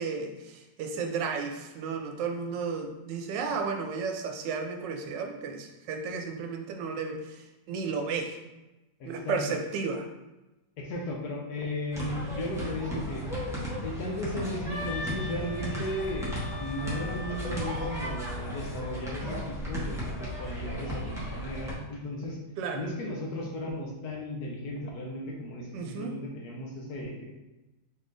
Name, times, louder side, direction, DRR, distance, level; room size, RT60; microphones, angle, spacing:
voice 1, 0.0-8.4 9.0-10.1 22.6-22.8 25.7-26.1, right 5 dB, 85° right, 4 dB, 1.3 m, -33 dB
voice 2, 9.0-9.4 10.8-13.2 13.8-22.4 22.7-27.3, left 1 dB, 65° left, -1 dB, 1.3 m, -35 dB
sound 1, 11.9-21.8, equal, 5° right, 0.7 m, -35 dB
Wind instrument woodwind instrument, 14.7-18.5, left 2 dB, 20° right, 1.0 m, -41 dB
4.6 x 3.6 x 2.6 m, 1.0 s
omnidirectional pair, 1.9 m